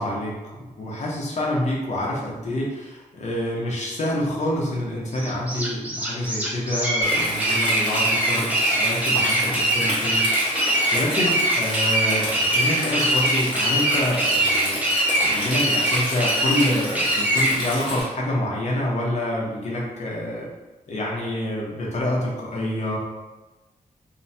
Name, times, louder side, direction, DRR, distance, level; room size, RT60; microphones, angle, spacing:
voice 1, 0.0-10.3 10.9-20.5 20.9-23.0, left 1 dB, 60° left, -3 dB, 0.7 m, -27 dB
sound 1, 5.1-17.5, right 1 dB, 10° right, 0.6 m, -22 dB
Stream, 7.0-18.0, equal, 35° left, 1.0 m, -30 dB
2.9 x 2.1 x 2.6 m, 1.1 s
wide cardioid pair, 135°, 14 cm